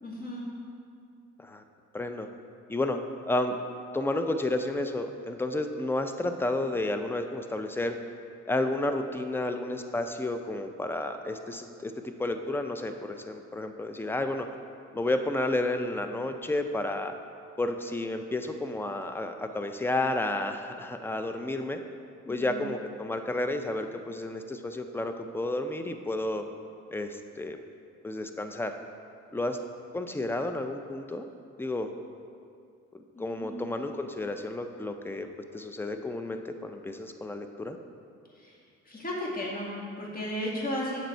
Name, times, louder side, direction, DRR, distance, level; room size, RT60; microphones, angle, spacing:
voice 1, 0.0-0.5 22.3-22.6 33.1-33.6 38.4-38.5 38.9-41.1, equal, 30° left, -4 dB, 2.1 m, -35 dB
voice 2, 1.9-2.3 2.7-3.0 3.3-3.6 3.9-8.0 8.5-14.5 14.9-17.1 17.6-21.8 22.3-26.4 26.9-27.6 28.0-28.7 29.3-29.6 29.9-31.3 31.6-31.9 32.9-35.3 35.5-37.8, left 2 dB, 5° left, 7 dB, 0.5 m, -31 dB
7.9 x 6.5 x 4.4 m, 2.4 s
cardioid pair, 90°, 30 cm